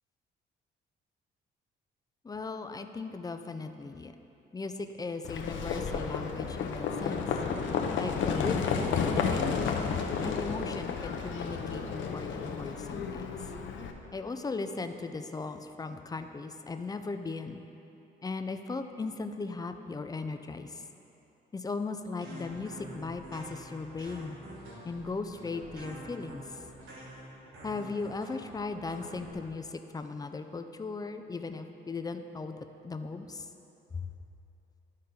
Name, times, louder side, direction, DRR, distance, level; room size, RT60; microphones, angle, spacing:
voice 1, 2.2-4.1 4.5-7.2 8.0-9.9 10.2-13.4 14.1-17.6 18.2-20.7 21.5-24.4 24.8-26.4 27.6-32.6 32.8-33.5 33.9-34.1, left 3 dB, 20° left, 7 dB, 0.4 m, -37 dB
Livestock farm animals working animals, 5.2-13.9, left 6 dB, 70° left, 0.7 m, -32 dB
sound 1, 22.2-29.3, right 1 dB, 85° right, 1.5 m, -47 dB
12.0 x 4.2 x 3.8 m, 3.0 s
cardioid pair, 90°, 20 cm